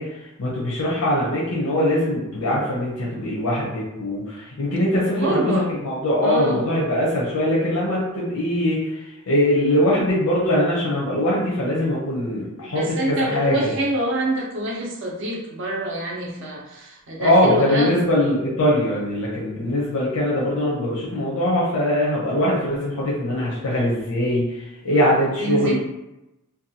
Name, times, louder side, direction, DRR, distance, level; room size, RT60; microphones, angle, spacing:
voice 1, 0.0-13.5 17.2-25.7, left 1 dB, 85° left, -5 dB, 0.6 m, -22 dB
voice 2, 5.0-5.7 6.2-6.7 12.6-18.0 25.4-25.7, right 1 dB, 55° right, -2 dB, 0.5 m, -26 dB
2.7 x 2.2 x 2.7 m, 0.95 s
head